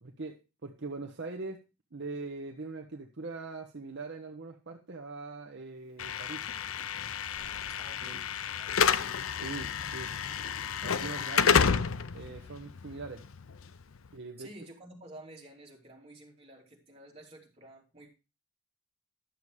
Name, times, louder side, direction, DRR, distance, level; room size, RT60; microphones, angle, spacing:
voice 1, 0.0-1.6 1.9-6.5 8.0-8.2 9.4-10.1 10.8-11.8 12.1-13.2 14.1-14.5, right 3 dB, 55° right, 2 dB, 1.0 m, -41 dB
Slam / Alarm, 6.0-14.1, left 6 dB, 70° left, 0.6 m, -30 dB
voice 2, 7.7-9.2 14.4-18.1, right 1 dB, 30° right, -1 dB, 3.1 m, -51 dB
11.5 x 6.9 x 4.7 m, 0.29 s
head